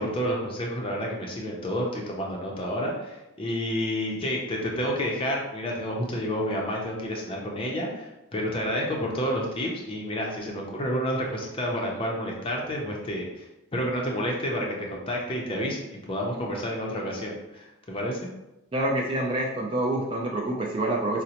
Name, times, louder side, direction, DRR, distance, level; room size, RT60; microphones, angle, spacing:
voice 1, 0.0-13.5 13.7-18.3, equal, 25° left, -1 dB, 0.5 m, -30 dB
voice 2, 18.7-21.2, right 1 dB, 25° right, -1 dB, 0.3 m, -27 dB
4.9 x 2.1 x 2.8 m, 0.94 s
head